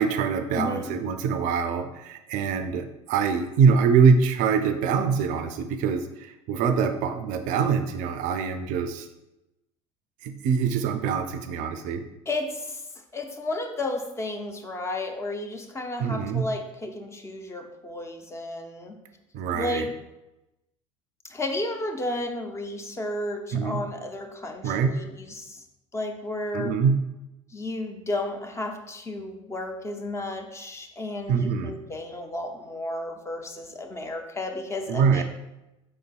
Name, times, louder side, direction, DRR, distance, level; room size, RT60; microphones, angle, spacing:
voice 1, 0.0-9.1 10.2-12.0 16.0-16.4 19.3-19.9 23.5-23.8 24.6-25.0 26.5-27.0 31.3-31.7 34.9-35.2, right 6 dB, 50° right, 8 dB, 0.4 m, -24 dB
voice 2, 0.5-0.9 12.3-12.8 13.1-19.0 19.5-19.9 21.3-25.6 25.9-26.8 27.5-35.2, left 2 dB, 15° left, 4 dB, 0.6 m, -33 dB
4.9 x 3.9 x 2.3 m, 0.95 s
hypercardioid pair, 70°, 17 cm